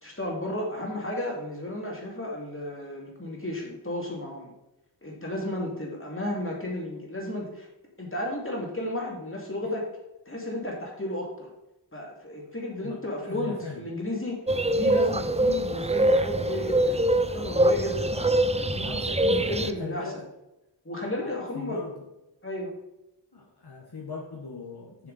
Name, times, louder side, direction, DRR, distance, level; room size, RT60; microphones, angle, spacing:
voice 1, 0.0-4.5 5.0-7.7 8.0-9.9 10.3-11.5 11.9-14.4 14.7-17.0 17.3-18.9 19.2-20.0 20.8-21.8 22.4-22.7, left 1 dB, 30° left, -2 dB, 2.4 m, -33 dB
voice 2, 13.2-13.9 18.8-19.3 19.8-20.3 21.2-22.1 23.3-25.1, left 4 dB, 60° left, -2 dB, 1.2 m, -40 dB
sound 1, 14.5-19.7, right 1 dB, 15° right, 0.4 m, -24 dB
7.0 x 6.5 x 4.1 m, 0.93 s
wide cardioid pair, 40°, 44 cm